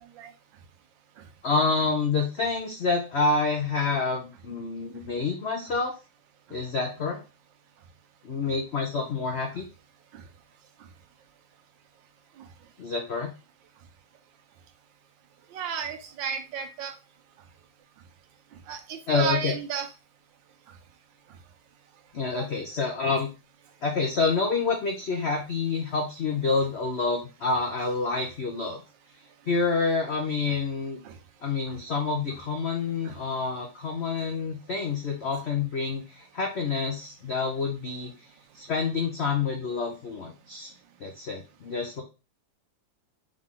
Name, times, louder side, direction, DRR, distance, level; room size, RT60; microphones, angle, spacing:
voice 1, 1.4-6.0 6.5-7.2 8.2-9.7 12.8-13.3 19.1-19.5 22.1-23.3 23.8-28.8 29.5-31.0 31.4-38.3 38.5-40.7 41.0-42.0, left 4 dB, 85° left, 2 dB, 0.5 m, -28 dB
voice 2, 15.5-16.9 18.7-19.9 22.3-22.5 31.0-31.1 33.0-33.2, right 7 dB, 75° right, 7 dB, 1.4 m, -33 dB
3.7 x 3.3 x 3.6 m, 0.31 s
omnidirectional pair, 2.1 m